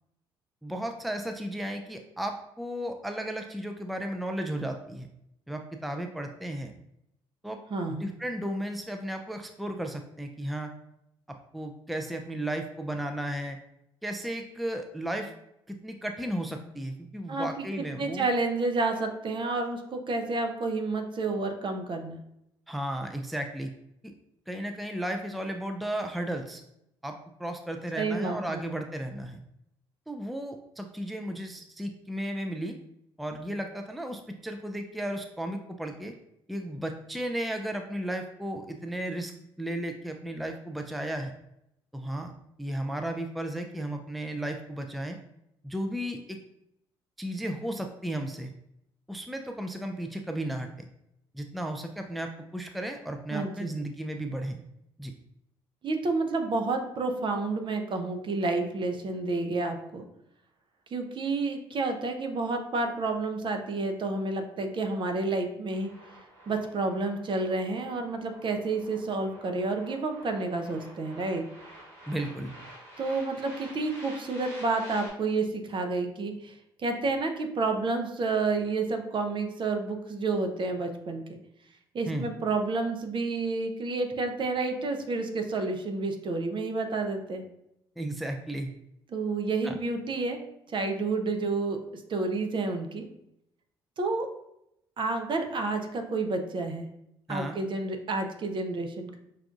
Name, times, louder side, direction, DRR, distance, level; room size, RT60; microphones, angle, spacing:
voice 1, 0.6-5.1 5.5-6.7 7.4-7.6 7.9-10.7 11.5-13.6 14.0-15.3 15.7-18.2 22.7-23.7 24.5-26.6 27.0-29.4 30.1-32.8 33.2-36.1 36.5-39.3 39.6-41.3 41.9-42.3 42.6-45.2 45.6-46.4 47.2-48.5 49.1-50.9 51.3-54.6 55.0-55.1 72.1-72.5 82.1-82.3 88.0-88.7 89.6-89.8 97.3-97.6, right 1 dB, ahead, 4 dB, 0.4 m, -34 dB
voice 2, 7.7-8.1 17.3-22.2 27.9-28.6 53.3-53.8 55.8-60.0 60.9-65.9 66.5-71.4 73.0-76.5 76.8-81.2 81.9-87.4 89.1-90.4 90.7-91.8 92.1-93.0 94.0-94.3 95.0-96.9 97.3-99.2, right 3 dB, 45° right, 5 dB, 0.7 m, -30 dB
sound 1, 65.7-75.1, right 1 dB, 80° right, 1.2 m, -49 dB
5.8 x 2.5 x 2.5 m, 0.79 s
hypercardioid pair, 55°, 12 cm